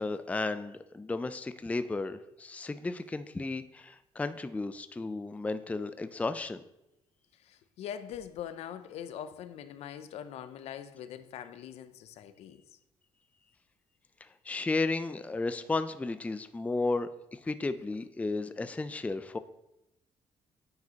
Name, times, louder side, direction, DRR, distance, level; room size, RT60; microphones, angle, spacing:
voice 1, 0.0-6.6 14.2-19.4, left 3 dB, 15° left, 0.4 m, -34 dB
voice 2, 7.3-12.8, left 9 dB, 80° left, 0.5 m, -43 dB
9.3 x 4.9 x 2.9 m
cardioid pair, 80°, 11 cm